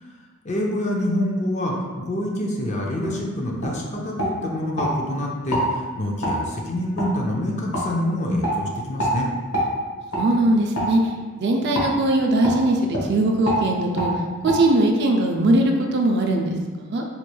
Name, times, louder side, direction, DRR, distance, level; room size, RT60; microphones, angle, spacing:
voice 1, 0.4-9.3, left 1 dB, 35° left, -1 dB, 0.5 m, -26 dB
sound 1, 3.0-3.2 3.6-3.8 4.2-4.9 5.5-5.7 6.2-6.4 7.0-7.1 7.7-7.9 8.4-8.6 9.0-9.2 9.5-9.7 10.1-10.3 10.7-10.9 11.7-11.9 12.4-12.6 12.9-13.1 13.4-13.6 14.0-14.1 14.5-14.6, equal, 85° left, 1.1 m, -25 dB
voice 2, 10.1-14.1 14.4-17.0, right 1 dB, 50° right, 1 dB, 0.4 m, -20 dB
4.1 x 3.1 x 2.2 m, 1.4 s
head